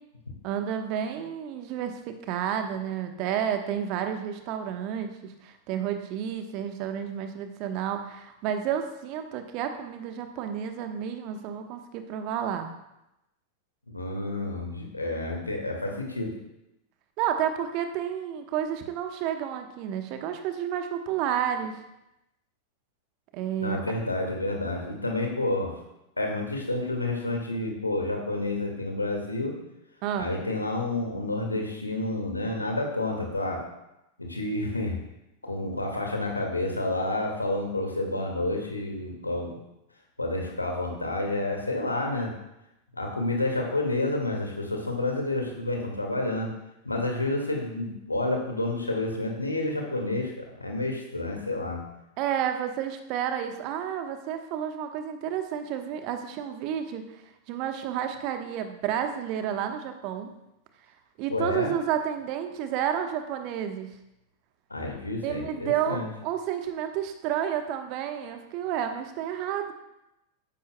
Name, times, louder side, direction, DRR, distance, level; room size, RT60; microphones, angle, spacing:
voice 1, 0.4-12.7 17.2-21.8 23.3-23.8 30.0-30.3 52.2-57.2 57.5-60.3 61.2-63.9 65.2-69.7, right 9 dB, 40° right, 6 dB, 1.1 m, -31 dB
voice 2, 13.9-16.3 23.6-25.7 26.2-29.5 30.2-33.6 34.2-35.0 35.4-39.6 40.2-42.3 42.9-46.5 46.8-51.8 61.3-61.7 64.7-66.1, left 2 dB, 80° left, 1 dB, 2.0 m, -29 dB
13.5 x 10.5 x 2.3 m, 0.89 s
figure-of-eight pair, 90°, 0 cm